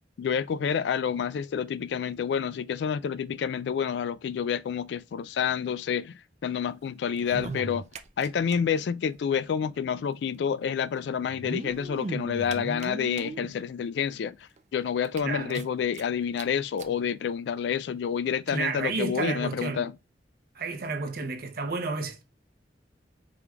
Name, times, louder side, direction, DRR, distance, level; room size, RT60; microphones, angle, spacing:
voice 1, 0.2-6.1 6.4-7.9 8.2-14.4 14.7-19.9, left 7 dB, 70° left, 0.3 m, -28 dB
sound 1, 7.1-8.6 8.8-8.9 9.1-9.2 10.3-10.4 11.2-13.5 14.1-14.2 14.6-14.7 15.0-16.0 16.4-16.5 16.8-16.9 17.7-17.8, right 3 dB, 40° right, 0.5 m, -37 dB
voice 2, 15.2-15.7 18.5-19.9 20.5-22.2, right 4 dB, 55° right, 0.8 m, -31 dB
5.0 x 3.2 x 2.4 m
head